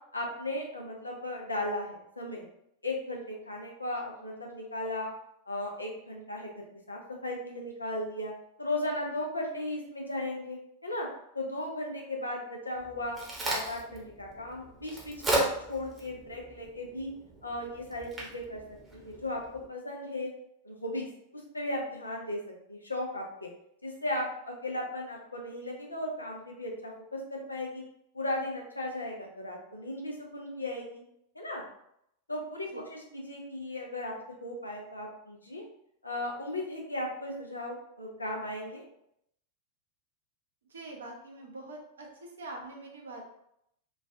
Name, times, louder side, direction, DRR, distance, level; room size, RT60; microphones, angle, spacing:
voice 1, 0.1-2.5 2.8-5.1 5.5-8.3 8.6-11.1 11.3-13.2 13.4-17.1 17.4-18.6 18.9-19.4 19.7-20.3 20.6-21.1 21.5-23.5 23.8-27.8 28.1-31.0 31.3-31.6 32.3-34.1 34.4-35.6 36.0-38.8, left 1 dB, 80° left, -1 dB, 0.6 m, -36 dB
Crack, 12.7-19.7, right 2 dB, 15° right, 0.9 m, -36 dB
voice 2, 40.7-43.2, right 2 dB, 70° right, 0 dB, 0.7 m, -44 dB
3.1 x 2.3 x 2.6 m, 0.77 s
figure-of-eight pair, 90°, 0 cm